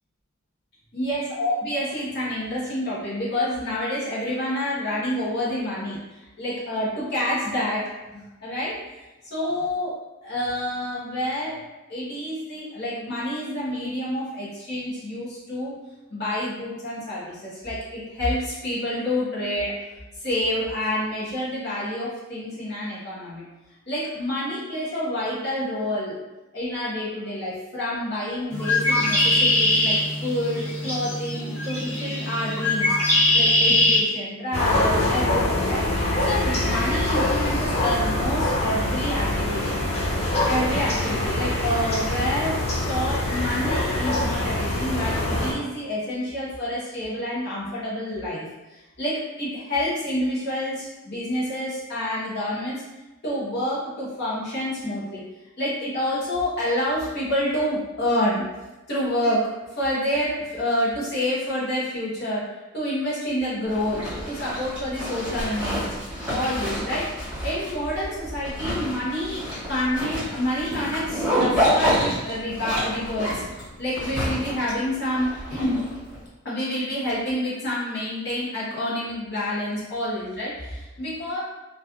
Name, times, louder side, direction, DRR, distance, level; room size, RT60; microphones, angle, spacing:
voice 1, 0.9-6.0 6.4-8.8 9.2-9.9 10.2-11.6 11.9-15.8 16.1-19.7 20.2-23.4 23.9-26.2 26.5-33.0 33.3-35.9 36.2-39.7 40.5-52.8 53.2-55.2 55.6-58.5 58.9-62.5 62.7-65.8 66.3-67.1 67.4-75.8 76.4-81.4, left 1 dB, 45° left, -8 dB, 1.1 m, -28 dB
Bird, 28.5-34.0, left 1 dB, 10° left, 0.8 m, -21 dB
sound 1, 34.5-45.5, left 1 dB, 30° left, 0.4 m, -24 dB
Zipper (clothing), 63.7-76.2, equal, 5° right, 1.4 m, -28 dB
3.1 x 2.4 x 2.5 m, 1.1 s
head